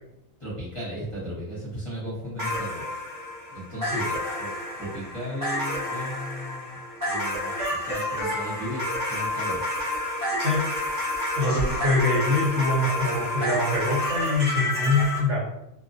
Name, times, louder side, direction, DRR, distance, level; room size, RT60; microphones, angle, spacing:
voice 1, 0.4-2.8 3.5-6.8 7.1-9.7, equal, 25° left, -10 dB, 0.9 m, -36 dB
sound 1, 2.4-15.2, left 1 dB, 25° right, 0.5 m, -29 dB
voice 2, 11.4-15.5, left 2 dB, 60° right, -6 dB, 1.1 m, -24 dB
2.3 x 2.1 x 2.6 m, 0.82 s
omnidirectional pair, 1.5 m